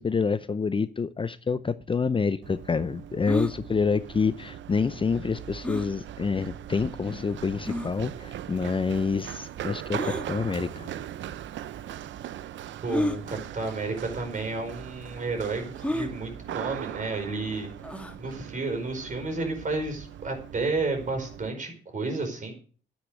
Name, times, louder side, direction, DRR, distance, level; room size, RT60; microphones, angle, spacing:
voice 1, 0.0-10.9, left 5 dB, 25° left, 0.6 m, -27 dB
Run, 2.4-21.5, right 11 dB, 70° right, 0.7 m, -40 dB
sound 1, 3.2-3.5 5.6-5.9 6.7-6.8 7.7-7.9 9.9-10.3 11.3-11.4 12.9-13.2 14.1-14.3 14.5-14.6 15.8-16.1 17.8-18.2, left 1 dB, 5° left, 1.7 m, -30 dB
voice 2, 12.8-17.7 18.2-22.5, right 3 dB, 40° right, 4.9 m, -31 dB
10.0 x 9.5 x 6.4 m
cardioid pair, 90°, 20 cm